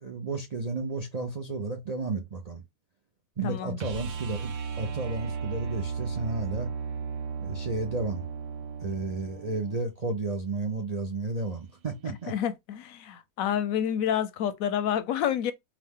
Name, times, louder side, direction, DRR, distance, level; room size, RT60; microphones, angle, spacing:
voice 1, 0.0-2.6 3.4-6.7 7.4-8.3 8.8-12.3, right 3 dB, 65° right, 0.4 m, -32 dB
voice 2, 3.4-3.8 12.3-15.5, left 9 dB, 70° left, 0.9 m, -28 dB
sound 1, 3.8-9.8 12.2-12.3, right 6 dB, 90° right, 1.5 m, -35 dB
4.9 x 2.4 x 3.6 m
omnidirectional pair, 1.8 m